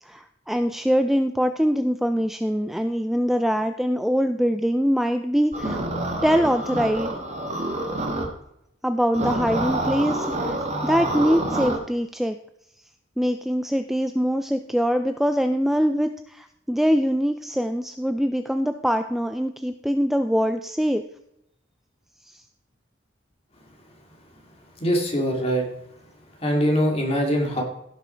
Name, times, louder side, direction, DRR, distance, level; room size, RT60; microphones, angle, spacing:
voice 1, 0.0-5.8 6.2-7.2 8.8-12.4 13.2-21.0 22.2-22.4, equal, ahead, 8 dB, 0.3 m, -23 dB
sound 1, 5.5-8.3 9.1-11.8, right 1 dB, 35° right, 1.7 m, -27 dB
voice 2, 24.8-25.6 26.4-27.6, equal, 30° left, 0 dB, 2.4 m, -22 dB
16.0 x 6.1 x 4.4 m, 0.78 s
head